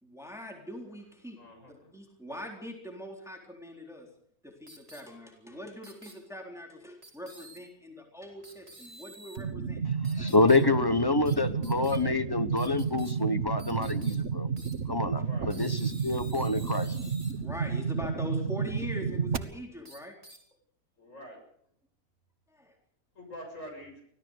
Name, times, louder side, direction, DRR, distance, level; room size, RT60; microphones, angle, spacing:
voice 1, 0.0-1.4 1.7-4.1 4.4-9.8 17.4-20.1 22.5-22.7, left 1 dB, ahead, 3.9 m, -42 dB
voice 2, 1.4-1.9 5.5-5.6 15.2-15.5 21.0-21.4 23.2-24.0, equal, 55° left, 7.4 m, -46 dB
sound 1, 4.7-5.0 5.8-6.1 7.0-7.6 8.4-9.4 10.0-10.6 11.3-11.4 11.6-12.0 12.6-13.1 13.6-14.2 14.6-14.7 15.5-17.3 19.8-20.4, right 1 dB, 25° right, 4.9 m, -50 dB
sound 2, 9.4-19.4, right 6 dB, 55° right, 1.6 m, -31 dB
voice 3, 10.2-14.5 14.9-16.9, left 3 dB, 15° left, 1.1 m, -27 dB
25.0 x 17.5 x 6.6 m
omnidirectional pair, 1.6 m